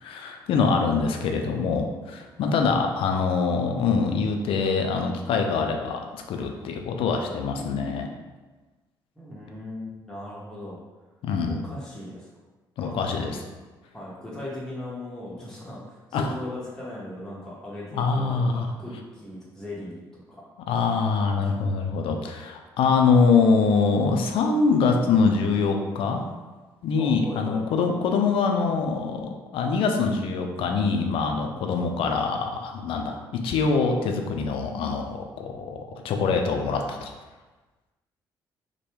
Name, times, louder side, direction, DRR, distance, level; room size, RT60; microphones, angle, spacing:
voice 1, 0.0-8.1 11.2-11.6 12.8-13.4 16.1-16.3 17.9-18.7 20.7-26.2 26.8-35.8 36.0-37.1, left 4 dB, 55° left, 4 dB, 0.4 m, -24 dB
voice 2, 9.2-10.8 11.5-12.3 12.8-13.0 13.9-20.0 20.3-20.4 21.1-21.7 22.0-22.2 27.0-27.8, left 1 dB, 5° left, -7 dB, 0.9 m, -38 dB
3.1 x 2.1 x 3.0 m, 1.3 s
figure-of-eight pair, 45°, 11 cm